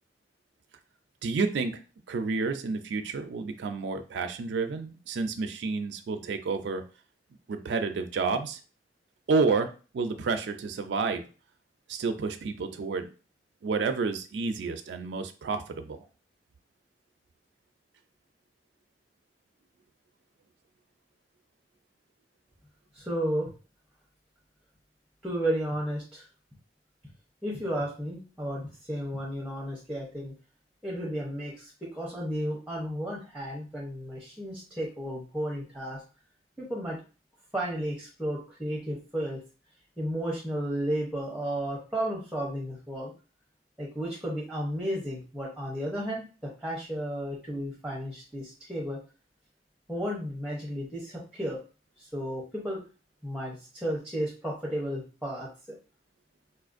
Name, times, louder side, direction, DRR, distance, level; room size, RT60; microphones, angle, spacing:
voice 1, 1.2-1.7 2.1-6.8 7.5-8.6 9.3-11.2 11.9-13.1 13.6-16.0, right 4 dB, 80° right, 6 dB, 0.4 m, -30 dB
voice 2, 22.9-23.5 25.2-26.2 27.4-30.3 30.8-36.0 36.6-37.0 37.5-39.4 40.0-43.1 43.8-49.0 49.9-51.6 52.0-52.8 53.2-55.5, equal, 5° right, -3 dB, 0.7 m, -33 dB
4.2 x 2.4 x 2.5 m, 0.35 s
head